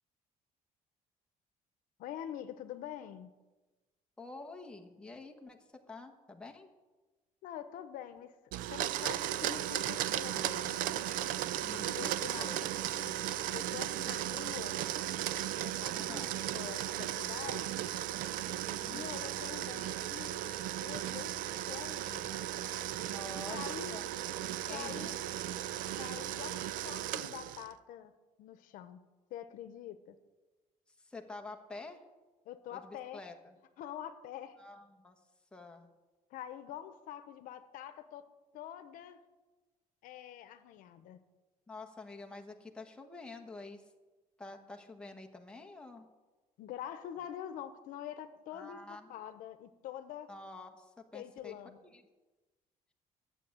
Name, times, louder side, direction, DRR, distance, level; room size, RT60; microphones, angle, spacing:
voice 1, 2.0-3.3 7.4-8.3 8.7-10.8 11.7-12.7 13.5-14.8 15.4-17.8 18.9-20.4 20.8-22.3 22.7-22.8 23.5-24.0 24.7-25.2 25.9-28.1 28.4-29.0 29.3-30.2 32.4-33.2 33.8-34.6 36.3-38.3 38.5-39.2 40.0-41.2 46.6-48.8 49.1-50.3 51.1-51.8, left 11 dB, 80° left, 10 dB, 0.9 m, -45 dB
voice 2, 4.2-6.7 11.6-12.1 12.4-13.2 13.7-13.8 15.9-16.4 18.8-19.3 23.1-23.6 23.9-24.1 24.7-25.1 30.9-32.0 32.7-33.6 34.6-35.2 35.5-35.9 41.7-43.8 44.4-46.1 48.5-49.1 50.3-51.5 51.8-52.0, left 3 dB, 5° left, 3 dB, 1.1 m, -48 dB
Domestic sounds home sounds, 8.5-27.7, right 13 dB, 75° right, 0.4 m, -36 dB
12.5 x 7.2 x 8.8 m, 1.2 s
cardioid pair, 170°, 14 cm